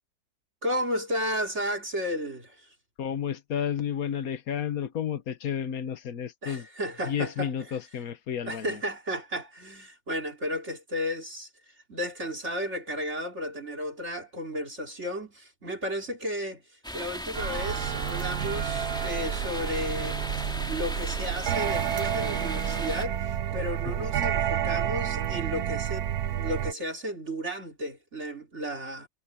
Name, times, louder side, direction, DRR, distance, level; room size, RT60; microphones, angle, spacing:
voice 1, 0.6-2.7 6.4-7.5 8.4-11.5 11.9-16.6 16.9-20.2 20.6-29.1, equal, 45° right, 3.4 m, -33 dB
voice 2, 3.0-6.7 7.0-8.8 23.9-24.1, left 8 dB, 65° left, 1.6 m, -31 dB
sound 1, 16.8-23.1, equal, 5° left, 2.7 m, -37 dB
sound 2, 17.3-26.7, right 9 dB, 80° right, 1.4 m, -30 dB
omnidirectional pair, 1.6 m